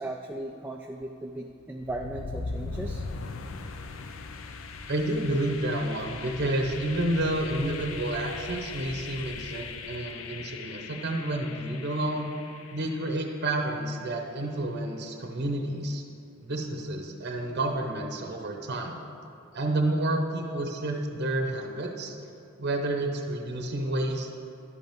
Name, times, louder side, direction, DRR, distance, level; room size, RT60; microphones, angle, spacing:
voice 1, 0.0-3.1, right 1 dB, 10° right, 2 dB, 0.3 m, -37 dB
sound 1, 1.8-13.7, left 4 dB, 70° left, 0.5 m, -39 dB
voice 2, 4.9-12.3 12.7-16.0 16.5-19.0 19.5-22.1 22.6-24.3, right 1 dB, 50° right, 3 dB, 0.8 m, -30 dB
11.0 x 8.0 x 3.5 m, 2.7 s
head